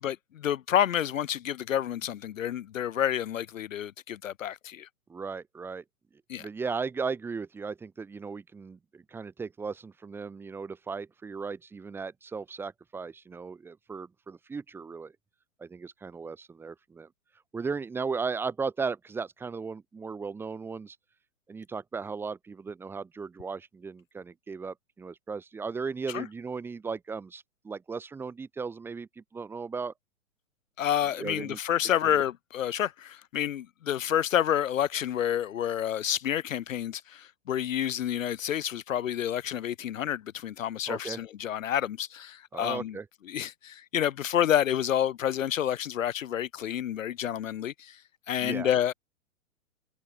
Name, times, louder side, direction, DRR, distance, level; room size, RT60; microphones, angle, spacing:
voice 1, 0.0-4.9 6.3-6.5 26.1-26.3 30.8-43.0 43.3-48.0 48.3-48.9, left 10 dB, 65° left, 0.6 m, -29 dB
voice 2, 5.1-5.8 6.4-15.1 15.6-17.1 17.5-21.0 21.5-29.9 31.2-31.6 32.0-32.2 40.9-41.2 42.5-43.1 48.4-48.7, right 5 dB, 5° right, 0.7 m, -36 dB
figure-of-eight pair, 115°, 43 cm